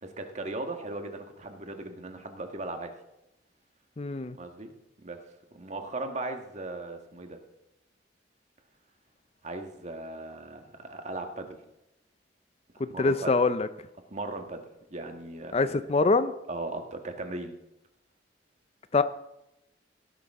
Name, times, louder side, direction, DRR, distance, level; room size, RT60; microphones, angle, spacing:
voice 1, 0.0-2.9 4.3-4.7 5.0-5.2 5.5-7.4 9.4-11.6 12.9-13.4 14.1-14.6 14.9-15.9 16.5-17.6, right 2 dB, 40° right, 5 dB, 1.6 m, -37 dB
voice 2, 4.0-4.3 13.0-13.7 15.5-16.3 18.9-19.0, left 3 dB, 35° left, 12 dB, 0.5 m, -24 dB
17.0 x 11.0 x 3.7 m, 0.87 s
head